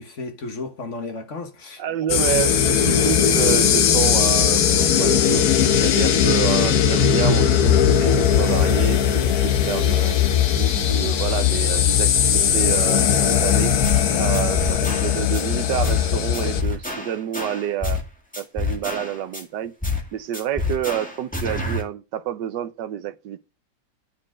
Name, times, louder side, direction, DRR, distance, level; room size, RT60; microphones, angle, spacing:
voice 1, 0.0-1.8 14.1-14.4, left 3 dB, 45° left, 1.4 m, -34 dB
voice 2, 1.8-10.2 10.5-13.7 14.2-18.0 18.4-19.7 20.1-23.4, right 11 dB, 70° right, 1.4 m, -28 dB
sound 1, 2.1-16.6, left 8 dB, 60° left, 1.2 m, -19 dB
sound 2, 13.8-14.1 14.3-15.4 15.8-16.1 16.3-18.1 18.3-19.4 19.8-20.1 20.3-21.8, left 3 dB, 5° left, 1.8 m, -27 dB
9.8 x 4.4 x 7.5 m
omnidirectional pair, 2.0 m